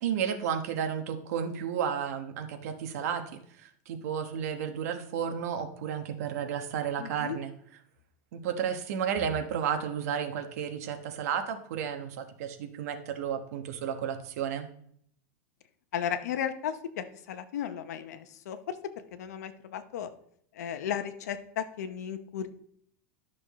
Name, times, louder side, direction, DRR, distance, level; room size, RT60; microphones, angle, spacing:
voice 1, 0.0-3.2 3.6-7.5 8.3-14.7, right 8 dB, 70° right, 6 dB, 1.2 m, -32 dB
voice 2, 7.0-7.4 15.9-18.6 19.2-20.1 20.6-22.5, left 9 dB, 90° left, 10 dB, 0.9 m, -35 dB
12.5 x 6.2 x 3.1 m, 0.66 s
supercardioid pair, 155°, 9 cm